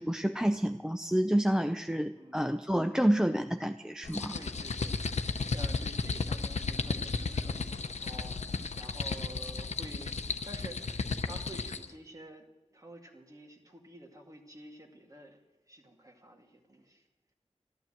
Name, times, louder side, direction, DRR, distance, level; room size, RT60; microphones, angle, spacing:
voice 1, 0.0-4.3, right 1 dB, 5° right, 8 dB, 0.5 m, -29 dB
voice 2, 2.1-2.5 4.3-12.4 12.7-17.1, right 1 dB, 30° right, 2 dB, 2.2 m, -50 dB
sound 1, 4.0-11.9, left 4 dB, 85° left, 0.7 m, -34 dB
13.5 x 12.0 x 7.6 m, 1.1 s
wide cardioid pair, 80°, 11 cm